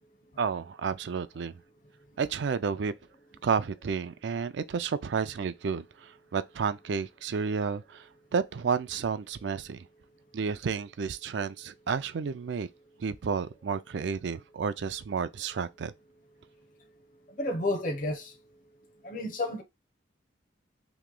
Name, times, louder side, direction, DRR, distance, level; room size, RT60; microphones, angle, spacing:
voice 1, 0.4-1.6 2.2-2.9 3.4-9.9 10.3-12.7 13.0-15.9, right 5 dB, 70° right, 0.4 m, -31 dB
voice 2, 17.4-18.3 19.0-19.6, left 1 dB, 45° left, 0.7 m, -31 dB
3.0 x 2.9 x 3.7 m
head